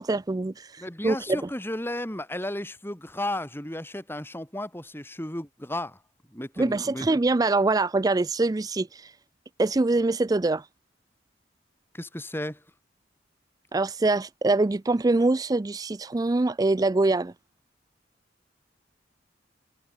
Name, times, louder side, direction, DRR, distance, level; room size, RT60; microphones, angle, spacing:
voice 1, 0.0-1.4 6.6-9.2 9.6-10.7 13.7-17.3, right 2 dB, 20° right, 0.4 m, -24 dB
voice 2, 0.8-6.0 6.3-7.1 11.9-12.6, left 1 dB, 10° left, 3.8 m, -34 dB
head